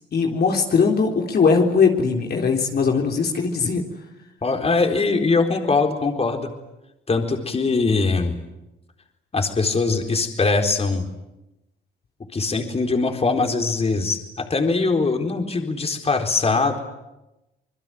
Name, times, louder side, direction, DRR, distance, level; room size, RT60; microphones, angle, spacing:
voice 1, 0.1-3.8, left 5 dB, 55° left, 1 dB, 3.7 m, -20 dB
voice 2, 4.4-6.5 7.1-8.4 9.3-11.1 12.3-16.8, left 3 dB, 30° left, 4 dB, 4.1 m, -22 dB
26.5 x 21.5 x 9.2 m, 0.96 s
cardioid pair, 90°, 20 cm